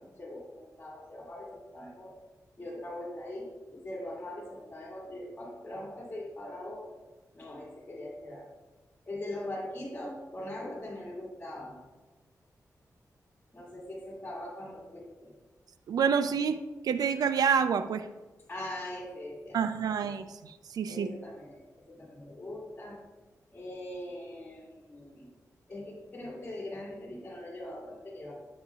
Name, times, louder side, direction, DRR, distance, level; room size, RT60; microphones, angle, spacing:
voice 1, 0.0-2.1 2.6-7.0 7.3-8.5 9.0-11.8 13.5-15.3 18.5-19.9 20.9-23.0 23.5-25.3 25.7-28.3, left 1 dB, 25° left, -5 dB, 2.3 m, -41 dB
voice 2, 15.9-18.1 19.5-21.1, right 7 dB, 85° right, 11 dB, 0.4 m, -28 dB
10.5 x 7.2 x 2.4 m, 1.2 s
wide cardioid pair, 125°, 6 cm